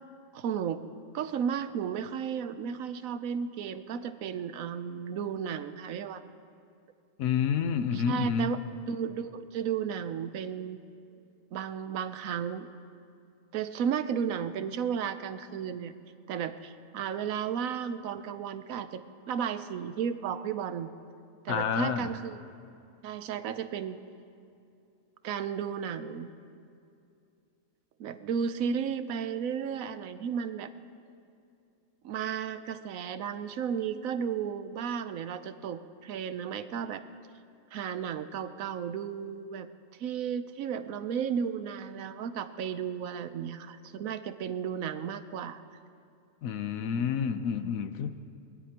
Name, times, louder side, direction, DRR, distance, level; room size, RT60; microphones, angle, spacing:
voice 1, 0.3-0.8 1.1-6.3 7.9-8.6 8.9-10.8 11.5-12.7 13.5-15.9 16.3-20.9 21.4-22.4 23.0-24.0 25.2-26.3 28.0-30.7 32.0-37.0 37.7-39.7 40.0-45.6, right 7 dB, 90° right, 11 dB, 1.1 m, -34 dB
voice 2, 7.2-8.5 21.5-22.1 46.4-48.1, left 7 dB, 90° left, 10 dB, 1.2 m, -29 dB
21.5 x 19.5 x 2.9 m, 2.6 s
omnidirectional pair, 1.4 m